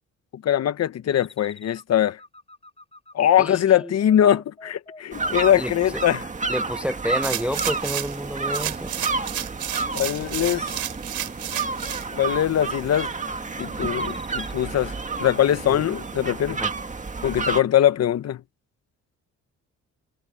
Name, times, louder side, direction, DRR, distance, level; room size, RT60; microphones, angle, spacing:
voice 1, 0.3-2.2 3.1-6.3 9.9-10.7 12.1-13.1 13.6-16.6 17.2-18.4, left 10 dB, 55° left, 1.0 m, -22 dB
sound 1, 1.1-6.1 6.4-6.9 7.2-7.8 8.1-8.6 8.9-9.5 9.8-10.3 10.6-11.1 11.5-11.9 12.3-12.8 13.2-13.6 14.0-14.5, left 2 dB, 20° left, 5.6 m, -48 dB
voice 2, 3.4-3.9 5.5-5.7 6.5-8.9 15.7-15.9 16.6-16.7, equal, 5° right, 0.4 m, -29 dB
sound 2, 5.1-17.6, right 4 dB, 25° right, 1.9 m, -30 dB
sound 3, 7.2-8.2 8.5-12.1 12.6-12.7, right 12 dB, 75° right, 3.3 m, -31 dB
cardioid pair, 90°, 30 cm